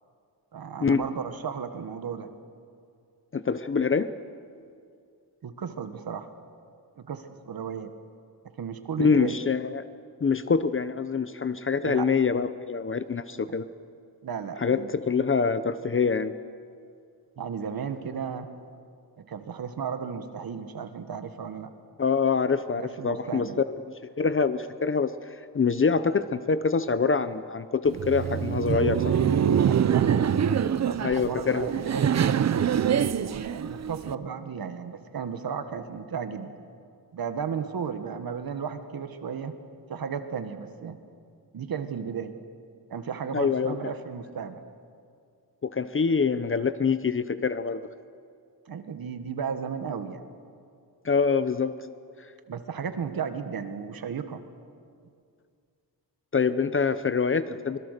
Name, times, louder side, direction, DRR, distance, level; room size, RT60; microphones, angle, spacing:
voice 1, 0.5-2.3 5.4-6.3 7.0-7.9 8.6-9.4 11.8-12.1 13.3-13.5 14.2-14.9 17.4-18.5 19.2-21.7 22.7-23.6 29.6-30.1 30.5-32.1 32.7-36.5 37.1-39.6 39.9-41.0 41.5-42.3 42.9-44.6 48.7-50.2 52.5-54.4, right 6 dB, 55° right, 9 dB, 1.5 m, -34 dB
voice 2, 3.3-4.1 9.0-9.9 10.2-13.7 14.6-16.3 22.0-23.8 24.2-29.2 31.0-31.7 43.3-43.8 45.6-47.8 51.0-51.7 56.3-57.8, left 5 dB, 30° left, 13 dB, 0.7 m, -25 dB
Laughter, 27.9-34.1, right 8 dB, 40° right, 0.5 m, -25 dB
25.5 x 21.5 x 6.7 m, 2.3 s
wide cardioid pair, 150°, 42 cm